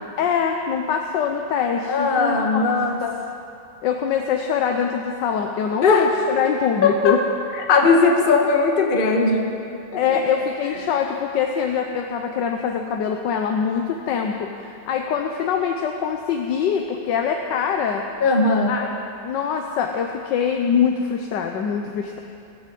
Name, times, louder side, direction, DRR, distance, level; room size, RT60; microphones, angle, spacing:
voice 1, 0.2-2.7 3.0-3.2 3.8-7.2 10.0-18.0 18.6-18.9 19.2-22.2, left 7 dB, 80° left, 3 dB, 1.5 m, -24 dB
voice 2, 1.9-3.0 5.8-6.1 6.8-7.1 7.6-9.5 18.2-18.7, left 4 dB, 35° left, 2 dB, 1.2 m, -18 dB
16.0 x 14.0 x 5.4 m, 2.6 s
omnidirectional pair, 2.0 m